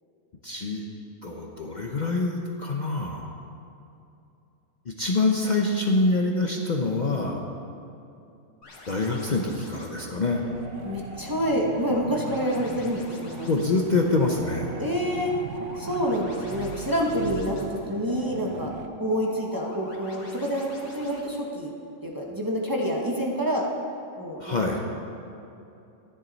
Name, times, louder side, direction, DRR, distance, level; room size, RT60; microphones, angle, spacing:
voice 1, 0.4-0.9 1.2-3.4 4.9-7.4 8.9-10.4 13.5-14.8 24.4-24.8, left 3 dB, 45° left, 0 dB, 0.8 m, -25 dB
sound 1, 8.6-21.2, left 2 dB, 70° left, 1.7 m, -45 dB
sound 2, 10.2-18.9, right 8 dB, 75° right, 0.9 m, -40 dB
voice 2, 10.8-13.5 14.8-15.3 15.8-18.7 19.0-21.7 22.0-23.6 24.2-24.8, equal, 20° right, -2 dB, 1.0 m, -27 dB
13.5 x 10.0 x 4.0 m, 2.7 s
omnidirectional pair, 1.3 m